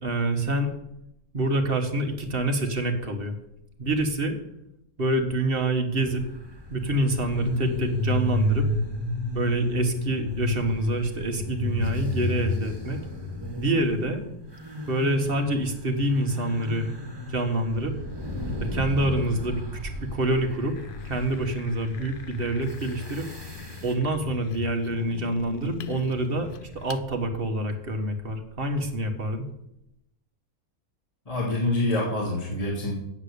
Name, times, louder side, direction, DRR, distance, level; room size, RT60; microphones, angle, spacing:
voice 1, 0.0-0.7 1.3-3.3 3.8-4.4 5.0-6.2 6.7-8.7 9.3-13.0 13.6-14.2 14.9-16.8 17.3-17.9 18.7-20.7 21.0-23.3 23.8-26.5 26.7-29.4, right 1 dB, 40° right, 5 dB, 1.5 m, -26 dB
sound 1, 6.0-23.9, left 2 dB, 15° right, 1.9 m, -32 dB
sound 2, 20.8-27.1, left 8 dB, 70° left, 0.5 m, -40 dB
voice 2, 31.2-32.9, left 2 dB, 25° left, -5 dB, 3.0 m, -26 dB
8.2 x 7.5 x 8.3 m, 0.82 s
omnidirectional pair, 1.5 m